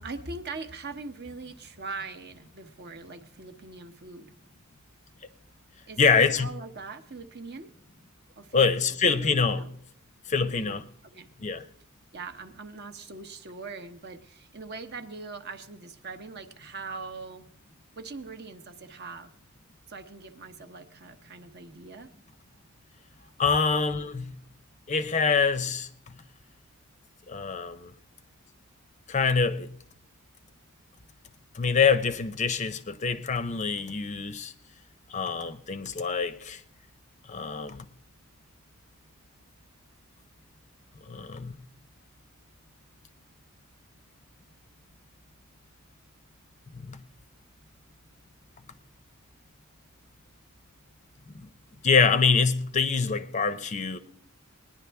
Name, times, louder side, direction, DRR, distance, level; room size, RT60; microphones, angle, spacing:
voice 1, 0.0-4.3 5.9-7.7 8.4-9.0 9.2-9.7 10.4-11.3 12.1-17.5 17.9-19.3 19.9-22.1 23.2-23.3, right 3 dB, 50° right, 0.8 m, -41 dB
voice 2, 6.0-6.5 8.5-9.6 10.3-10.8 11.4-11.6 23.4-24.3 24.9-26.2 27.3-27.9 29.1-29.7 31.5-34.5 35.1-36.6 37.3-37.9 41.0-41.6 46.7-47.0 51.3-51.5 51.8-54.0, left 5 dB, 35° left, 0.5 m, -25 dB
20.0 x 10.0 x 3.4 m
head